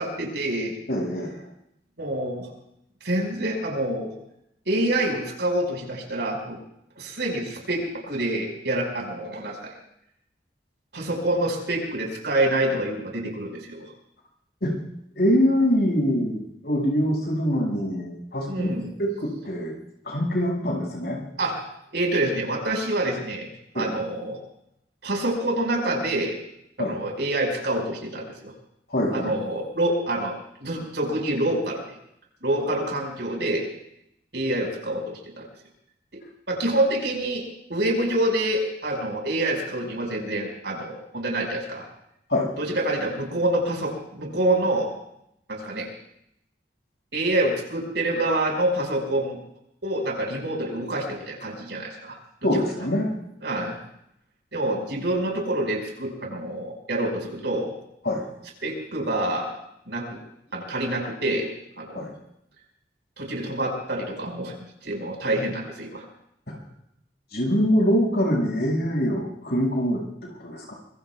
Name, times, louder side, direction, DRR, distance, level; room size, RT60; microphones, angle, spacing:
voice 1, 0.0-0.8 2.0-2.5 3.0-4.1 4.7-6.6 7.0-9.7 10.9-13.9 18.5-18.9 21.4-21.6 21.9-23.5 23.7-24.4 25.0-26.4 26.8-28.5 29.1-31.8 32.4-33.7 34.3-35.5 36.5-37.4 37.7-41.9 42.6-44.9 45.5-45.9 47.1-49.4 49.8-52.2 53.4-53.8 54.5-57.7 58.6-59.5 59.9-60.2 60.5-61.5 61.8-62.0 63.2-66.0, right 1 dB, 70° right, 1 dB, 5.5 m, -26 dB
voice 2, 0.9-1.4 14.6-14.7 15.1-18.7 19.0-19.8 20.0-21.2 23.7-24.0 26.8-27.0 28.9-29.3 32.6-32.7 42.3-42.5 52.4-53.2 58.0-58.2 61.9-62.2 66.5-66.7 67.3-70.0 70.4-70.7, equal, 65° left, -1 dB, 6.3 m, -24 dB
25.0 x 23.5 x 2.4 m, 0.78 s
head